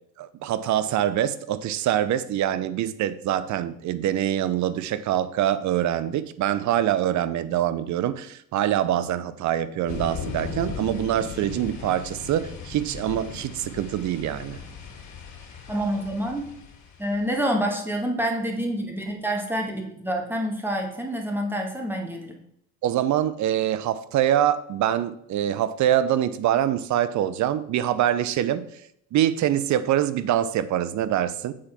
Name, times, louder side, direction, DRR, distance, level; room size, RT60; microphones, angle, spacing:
voice 1, 0.2-14.6 22.8-28.6 29.1-31.5, right 11 dB, 55° right, 15 dB, 0.7 m, -24 dB
sound 1, 9.9-17.3, left 5 dB, 55° left, 2.7 m, -37 dB
voice 2, 15.7-16.5 17.0-22.4, right 1 dB, 5° right, 1 dB, 2.0 m, -27 dB
7.6 x 4.3 x 5.9 m, 0.75 s
supercardioid pair, 85°, 34 cm